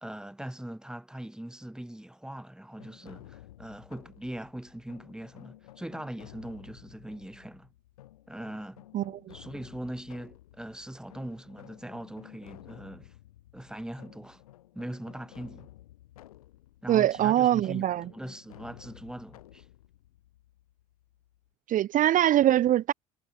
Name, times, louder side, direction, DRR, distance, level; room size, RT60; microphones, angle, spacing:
voice 1, 0.0-7.7 8.3-8.9 9.3-13.1 13.5-14.4 14.7-15.7 16.8-19.6, right 1 dB, 5° right, 2.7 m, -41 dB
sound 1, 2.8-21.5, left 14 dB, 90° left, 4.3 m, -53 dB
voice 2, 16.9-18.0 21.7-22.9, right 12 dB, 50° right, 0.8 m, -23 dB
hypercardioid pair, 75°, 18 cm